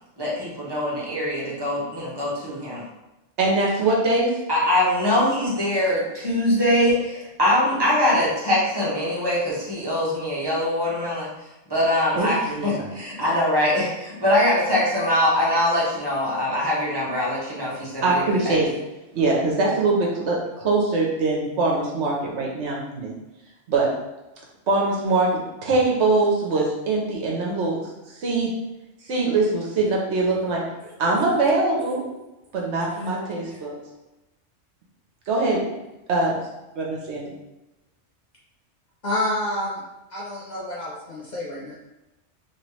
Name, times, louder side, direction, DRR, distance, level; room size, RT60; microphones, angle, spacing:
voice 1, 0.2-2.8 4.5-11.3 11.7-18.6, left 1 dB, 20° right, -6 dB, 1.0 m, -23 dB
voice 2, 3.4-4.3 12.1-12.9 18.0-18.7 19.1-23.1 23.7-23.9 24.7-27.8 28.2-28.5 29.0-30.6 31.0-32.1 32.5-33.8 35.3-35.7 36.1-36.3 36.8-37.3, right 3 dB, 70° right, -2 dB, 1.0 m, -22 dB
voice 3, 39.0-39.8 40.1-41.7, left 1 dB, 50° left, -6 dB, 0.6 m, -28 dB
3.2 x 3.0 x 3.0 m, 0.99 s
omnidirectional pair, 1.2 m